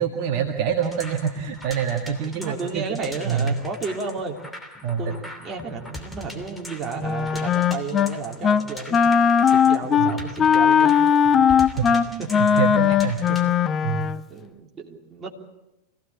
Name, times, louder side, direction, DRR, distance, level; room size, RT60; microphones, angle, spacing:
voice 1, 0.0-3.0 3.2-3.5 4.8-5.0 10.0-10.1 11.8-13.2 13.8-14.1, right 8 dB, 45° right, 3 dB, 1.7 m, -26 dB
sound 1, 0.8-13.5, left 1 dB, 5° left, 2.9 m, -41 dB
voice 2, 2.3-4.4 5.0-9.0 9.4-11.0 12.2-12.4 13.3-13.4 14.3-15.4, right 4 dB, 25° right, 0 dB, 3.2 m, -32 dB
Wind instrument woodwind instrument, 7.0-8.1 8.4-8.7 8.9-14.2, left 7 dB, 25° left, 0.7 m, -19 dB
25.0 x 16.5 x 8.3 m, 0.97 s
figure-of-eight pair, 90°, 0 cm